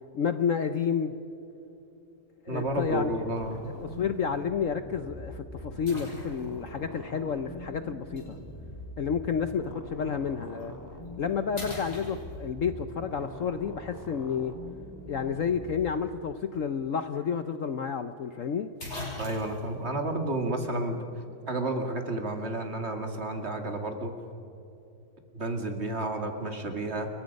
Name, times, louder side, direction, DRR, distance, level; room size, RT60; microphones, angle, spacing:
voice 1, 0.1-1.1 2.4-3.2 3.8-8.4 9.0-10.7 11.2-14.5 15.1-18.7, left 6 dB, 55° left, 10 dB, 1.0 m, -30 dB
voice 2, 2.5-3.6 19.2-21.0 21.5-24.1 25.3-27.1, right 2 dB, 35° right, 4 dB, 2.3 m, -31 dB
sound 1, 2.6-15.9, left 1 dB, 10° left, 3.1 m, -43 dB
sound 2, 3.4-3.7 4.3-4.4 5.9-6.7 8.2-8.3 10.4-10.6 11.1-11.2 11.5-12.6 16.7-16.8 17.1-17.2 18.3-18.4 18.8-19.7, left 1 dB, 35° left, 6.7 m, -40 dB
29.5 x 22.5 x 5.3 m, 3.0 s
omnidirectional pair, 1.9 m